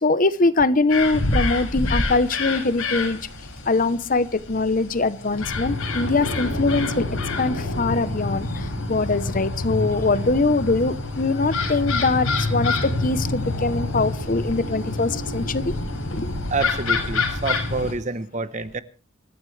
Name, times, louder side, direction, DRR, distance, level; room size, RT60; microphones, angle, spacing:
voice 1, 0.0-3.2 3.7-7.1 7.4-8.5 8.9-15.7 16.1-16.3, left 3 dB, 40° left, 0.8 m, -22 dB
sound 1, 0.9-17.9, left 2 dB, 80° left, 6.2 m, -27 dB
voice 2, 16.5-18.8, right 3 dB, 35° right, 0.9 m, -28 dB
25.5 x 14.5 x 3.3 m
head